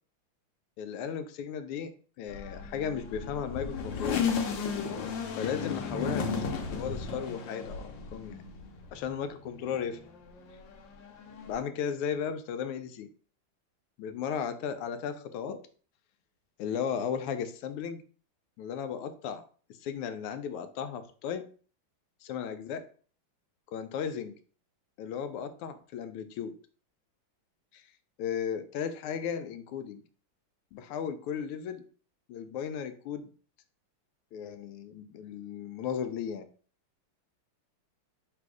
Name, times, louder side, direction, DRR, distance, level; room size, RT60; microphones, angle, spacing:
voice 1, 0.8-1.9 2.2-4.2 5.4-8.5 8.9-10.0 11.5-13.1 14.0-15.6 16.6-18.0 18.6-19.4 19.8-21.5 22.2-22.8 23.7-24.4 25.0-26.5 27.7-27.8 28.2-30.0 30.7-31.8 32.3-33.3 34.3-36.5, left 7 dB, 90° left, 9 dB, 1.5 m, -35 dB
sound 1, 2.3-9.2 9.6-11.6, left 5 dB, 70° left, 1.2 m, -34 dB
4.0 x 2.5 x 4.7 m, 0.42 s
omnidirectional pair, 2.4 m